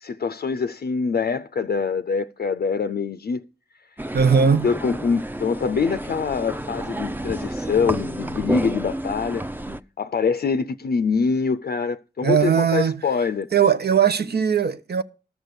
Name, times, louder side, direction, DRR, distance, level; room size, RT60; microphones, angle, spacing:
voice 1, 0.0-3.5 4.6-9.5 10.0-13.5, left 5 dB, 55° left, 0.5 m, -24 dB
sound 1, 4.0-9.8, right 1 dB, 10° right, 0.6 m, -30 dB
voice 2, 4.1-4.7 12.2-13.0 13.5-15.0, right 7 dB, 65° right, 0.8 m, -19 dB
13.5 x 6.3 x 6.8 m
cardioid pair, 55°, 18 cm